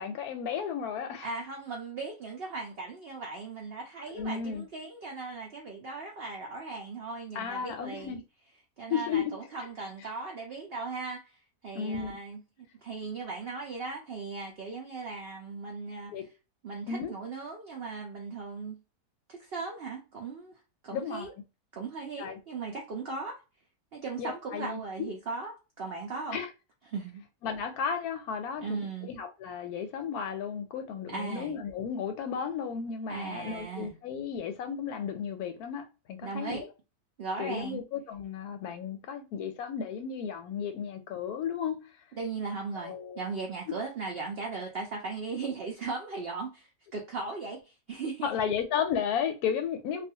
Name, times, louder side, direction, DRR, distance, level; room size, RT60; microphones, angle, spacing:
voice 1, 0.0-1.3 4.1-4.6 7.3-8.2 8.9-9.3 11.7-12.2 16.1-16.3 16.9-17.1 20.9-21.3 22.2-22.4 24.2-25.1 26.3-26.5 27.4-36.7 37.4-41.8 42.8-43.2 48.2-50.0, left 7 dB, 75° left, 1.0 m, -34 dB
voice 2, 1.2-8.2 8.8-16.3 16.6-18.8 19.3-21.3 21.7-23.4 23.9-26.4 26.9-27.2 28.6-29.1 31.1-31.6 33.1-33.9 36.2-36.7 37.2-37.8 42.1-48.3, right 4 dB, 70° right, 0.5 m, -38 dB
2.4 x 2.4 x 2.7 m
omnidirectional pair, 1.7 m